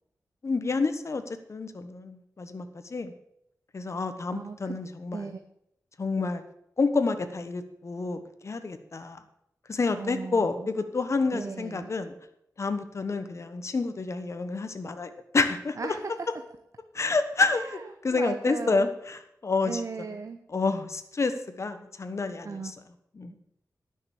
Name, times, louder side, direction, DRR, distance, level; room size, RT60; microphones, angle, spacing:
voice 1, 0.4-3.1 3.7-5.2 6.0-6.4 6.8-9.2 9.7-12.1 12.6-15.8 16.9-17.8 18.0-19.8 20.5-22.6 23.2-23.3, left 3 dB, 50° left, 9 dB, 1.2 m, -29 dB
voice 2, 4.3-4.8 5.1-5.4 10.0-10.8 11.3-11.9 15.7-16.3 17.5-18.9 19.6-20.4 22.4-22.7 23.3-23.4, right 4 dB, 55° right, 7 dB, 0.8 m, -37 dB
10.5 x 6.7 x 8.5 m, 0.79 s
wide cardioid pair, 95°, 6 cm